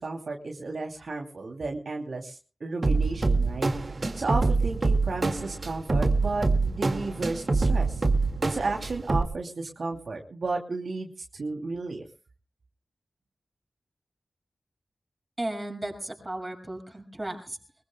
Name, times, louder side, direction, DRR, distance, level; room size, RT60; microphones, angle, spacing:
voice 1, 0.0-8.0 8.5-12.0, right 3 dB, 70° right, 1 dB, 2.8 m, -33 dB
sound 1, 2.8-9.2, right 3 dB, 45° right, 2.0 m, -25 dB
voice 2, 15.4-17.6, right 1 dB, 20° right, 3 dB, 6.5 m, -35 dB
24.5 x 21.5 x 2.3 m, 0.37 s
wide cardioid pair, 80°, 0 cm